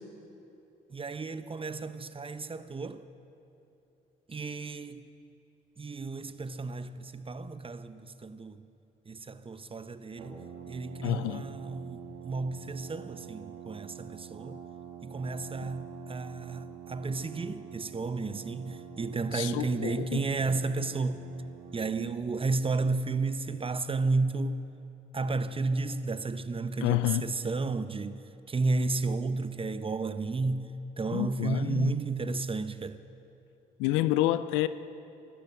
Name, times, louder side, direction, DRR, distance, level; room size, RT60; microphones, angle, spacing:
voice 1, 0.9-3.0 4.3-5.1 5.8-8.7 9.1-14.6 15.0-21.2 21.7-24.6 25.1-28.2 28.5-30.7 31.0-33.0, right 3 dB, 30° right, 0.8 m, -32 dB
Brass instrument, 10.2-22.4, right 9 dB, 80° right, 1.8 m, -46 dB
voice 2, 11.0-11.5 19.3-20.2 26.8-27.3 31.1-32.0 33.8-34.7, left 15 dB, 85° left, 0.5 m, -29 dB
14.0 x 12.0 x 7.6 m
supercardioid pair, 55°, 20 cm